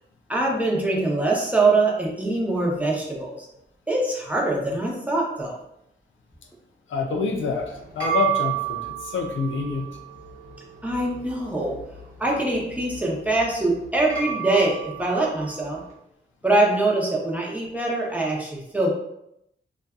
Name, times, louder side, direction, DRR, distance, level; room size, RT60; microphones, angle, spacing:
voice 1, 0.3-3.5 3.9-5.6 10.8-11.8 12.2-15.8 16.4-18.9, right 2 dB, 5° right, -3 dB, 0.7 m, -23 dB
voice 2, 6.9-9.9, left 4 dB, 90° left, 2 dB, 0.4 m, -27 dB
sound 1, 7.4-15.9, right 10 dB, 80° right, 0.9 m, -33 dB
2.6 x 2.3 x 2.3 m, 0.80 s
cardioid pair, 60°, 20 cm